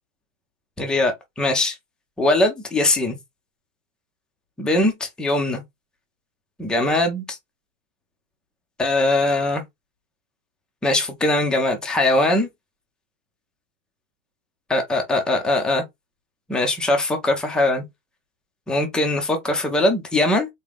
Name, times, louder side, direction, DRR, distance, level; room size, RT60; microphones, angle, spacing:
voice 1, 0.8-1.7 2.2-3.2 4.6-5.6 6.6-7.4 8.8-9.6 10.8-12.5 14.7-15.8 16.5-17.8 18.7-20.5, left 2 dB, ahead, 0.4 m, -21 dB
3.6 x 2.6 x 3.3 m
hypercardioid pair, 130°, 39 cm